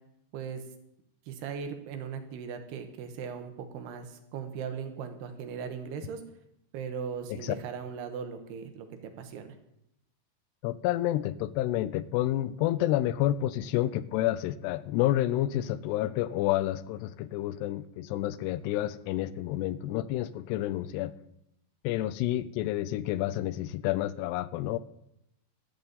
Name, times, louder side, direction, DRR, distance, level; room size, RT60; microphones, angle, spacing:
voice 1, 0.3-0.6 1.3-6.2 6.7-9.5, right 6 dB, 80° right, 7 dB, 3.3 m, -38 dB
voice 2, 10.6-21.1 21.8-24.8, left 14 dB, 90° left, 16 dB, 2.7 m, -29 dB
14.5 x 12.5 x 4.1 m, 0.79 s
omnidirectional pair, 4.7 m